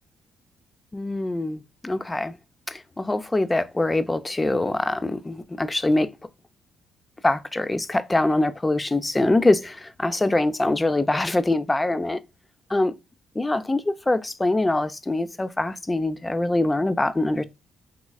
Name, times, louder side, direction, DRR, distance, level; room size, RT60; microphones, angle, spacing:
voice 1, 0.9-2.4 2.7-6.1 7.2-12.2 12.7-12.9 13.4-17.4, left 2 dB, 15° left, 0.4 m, -23 dB
3.6 x 3.1 x 2.2 m
cardioid pair, 90°, 0 cm